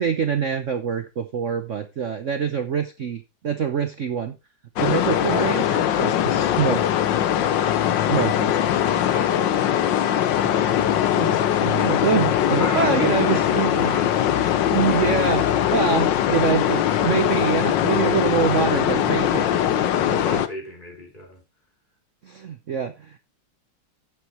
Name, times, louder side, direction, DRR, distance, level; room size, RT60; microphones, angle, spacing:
voice 1, 0.0-4.4 4.8-6.9 7.9-8.5 11.1-14.0 14.7-19.9 22.2-23.2, right 7 dB, 60° right, 0.8 m, -25 dB
sound 1, 4.8-20.5, left 10 dB, 65° left, 1.4 m, -21 dB
voice 2, 9.1-10.1 10.4-11.7 12.6-14.3 19.9-21.4, left 1 dB, 20° left, 3.2 m, -35 dB
17.5 x 5.9 x 3.0 m
omnidirectional pair, 2.3 m